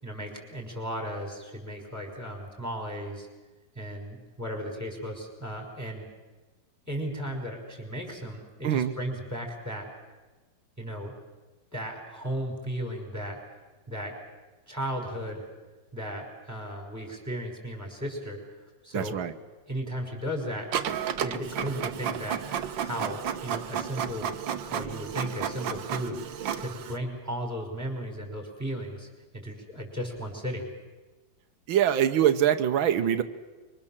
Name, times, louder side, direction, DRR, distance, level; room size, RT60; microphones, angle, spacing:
voice 1, 0.0-3.3 3.8-6.1 6.9-9.9 10.8-11.1 11.7-13.4 13.9-14.1 14.7-15.5 15.9-18.4 18.8-19.2 19.7-20.7 21.2-22.4 22.8-24.3 24.7-26.2 26.6-29.1 29.3-30.7, equal, 10° right, 2 dB, 5.4 m, -35 dB
voice 2, 18.9-19.3 31.7-33.2, right 10 dB, 90° right, 9 dB, 1.8 m, -23 dB
Printer, 20.7-27.0, right 8 dB, 70° right, 1.7 m, -32 dB
25.5 x 24.5 x 7.3 m, 1.3 s
omnidirectional pair, 2.1 m